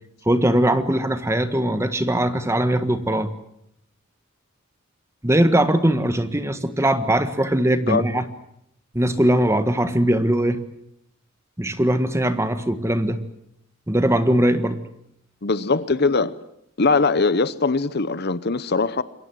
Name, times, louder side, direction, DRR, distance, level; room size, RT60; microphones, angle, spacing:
voice 1, 0.2-3.3 5.2-8.2 8.9-10.6 11.6-13.2 13.9-14.8, right 1 dB, 15° right, 1.5 m, -20 dB
voice 2, 15.4-16.3 16.8-19.0, left 4 dB, 50° left, 0.9 m, -21 dB
27.5 x 22.5 x 7.7 m
head